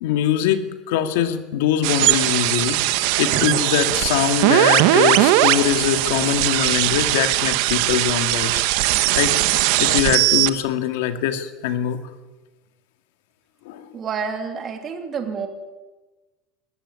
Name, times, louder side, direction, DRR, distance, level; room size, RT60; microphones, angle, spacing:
voice 1, 0.0-8.6 9.1-9.4 9.8-12.0 13.7-13.9, left 10 dB, 85° left, 8 dB, 2.2 m, -22 dB
sound 1, 1.8-10.5, right 16 dB, 65° right, 1.3 m, -19 dB
voice 2, 13.9-15.5, right 6 dB, 30° right, 5 dB, 2.8 m, -28 dB
19.5 x 15.0 x 9.9 m, 1.2 s
cardioid pair, 155°, 0 cm